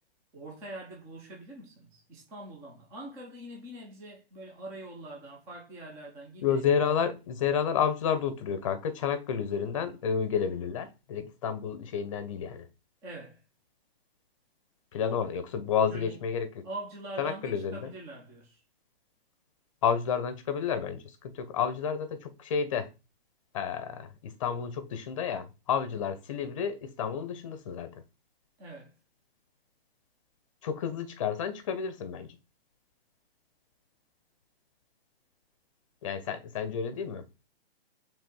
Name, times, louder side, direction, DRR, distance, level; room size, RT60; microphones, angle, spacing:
voice 1, 0.3-6.6 13.0-13.4 15.8-16.2 16.6-18.6 28.6-28.9, right 2 dB, 10° right, 0.6 m, -43 dB
voice 2, 6.4-12.7 14.9-16.5 17.2-17.9 19.8-22.9 23.5-27.9 30.6-32.3 36.0-37.2, left 7 dB, 30° left, 0.8 m, -30 dB
5.1 x 3.7 x 5.3 m
hypercardioid pair, 165°, 31 cm